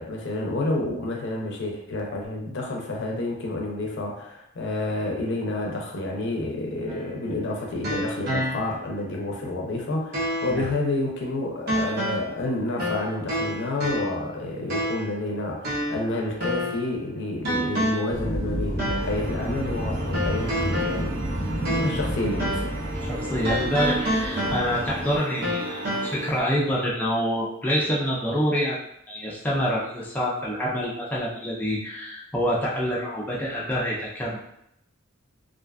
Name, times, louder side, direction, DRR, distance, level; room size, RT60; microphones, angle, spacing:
voice 1, 0.0-21.1 21.8-22.7, left 2 dB, 65° left, 0 dB, 0.5 m, -29 dB
sound 1, 6.9-8.9 9.4-9.5 10.1-10.7 11.7-12.4 12.8-14.3 14.7-15.2 15.6-16.9 17.4-18.2 18.8-19.2 20.1-22.1 22.4-22.8 23.4-25.0 25.4-26.1, equal, 50° right, 0.7 m, -29 dB
sound 2, 18.1-25.2, right 1 dB, 15° right, 0.8 m, -31 dB
sound 3, 19.0-26.4, equal, 85° right, 0.7 m, -36 dB
voice 2, 23.0-34.4, equal, 10° left, -6 dB, 0.4 m, -27 dB
2.4 x 2.3 x 2.3 m, 0.76 s
head